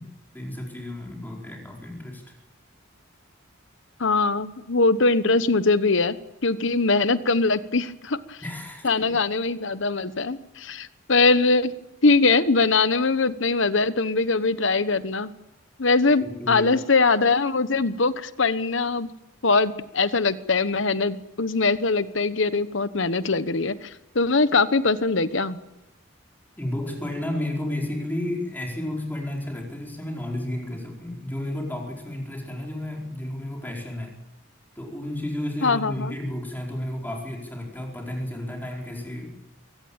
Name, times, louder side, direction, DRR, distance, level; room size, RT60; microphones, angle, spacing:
voice 1, 0.0-2.3 8.4-8.9 16.2-16.9 26.6-34.1 34.7-39.4, left 1 dB, 10° left, 0 dB, 4.8 m, -32 dB
voice 2, 4.0-8.4 8.8-11.7 12.0-15.3 15.8-19.1 19.4-25.6 35.6-36.1, left 3 dB, 65° left, 13 dB, 1.1 m, -22 dB
23.5 x 17.5 x 8.9 m, 0.93 s
head